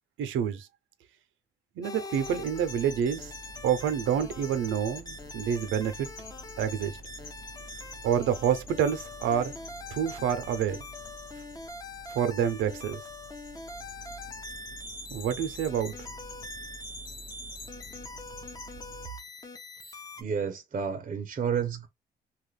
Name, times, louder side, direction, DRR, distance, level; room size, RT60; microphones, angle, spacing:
voice 1, 0.2-0.7 1.8-3.3 3.6-6.1 6.6-7.0 8.0-9.5 9.9-10.8 12.1-13.0 15.1-15.9, right 8 dB, 80° right, 0.6 m, -28 dB
sound 1, 1.8-20.2, left 2 dB, 20° left, 0.7 m, -44 dB
sound 2, 2.1-19.1, left 1 dB, 80° left, 1.0 m, -46 dB
voice 2, 20.2-21.9, right 7 dB, 40° right, 0.6 m, -30 dB
3.0 x 2.3 x 3.2 m
cardioid pair, 90°, 20 cm